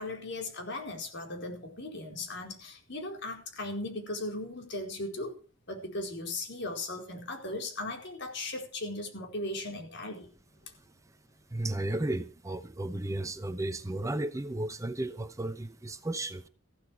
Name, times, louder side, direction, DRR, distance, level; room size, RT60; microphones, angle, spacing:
voice 1, 0.0-5.4 5.7-10.3, left 2 dB, 60° left, 4.6 m, -37 dB
voice 2, 11.5-16.4, right 1 dB, 15° right, 0.8 m, -34 dB
15.0 x 12.5 x 4.7 m
head